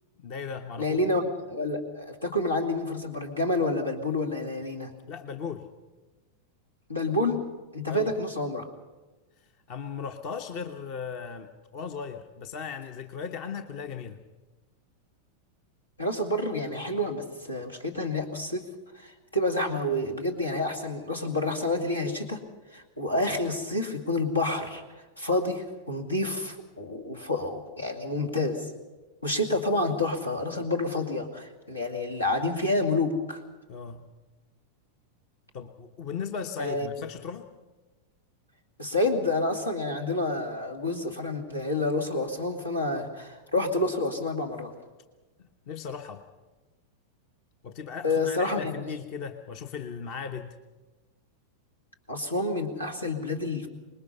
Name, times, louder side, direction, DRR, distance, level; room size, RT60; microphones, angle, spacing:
voice 1, 0.2-1.0 5.1-5.7 7.8-8.1 9.7-14.2 33.7-34.1 35.5-37.5 45.7-46.2 47.6-50.6, left 6 dB, 45° left, 7 dB, 1.1 m, -37 dB
voice 2, 0.8-4.9 6.9-7.4 7.7-8.7 16.0-18.6 18.9-22.4 22.7-24.8 25.2-28.7 29.2-33.4 36.6-36.9 38.8-44.7 48.0-48.7 52.1-53.7, left 2 dB, 80° left, 5 dB, 2.3 m, -28 dB
25.5 x 20.5 x 5.6 m, 1.2 s
figure-of-eight pair, 90°, 0 cm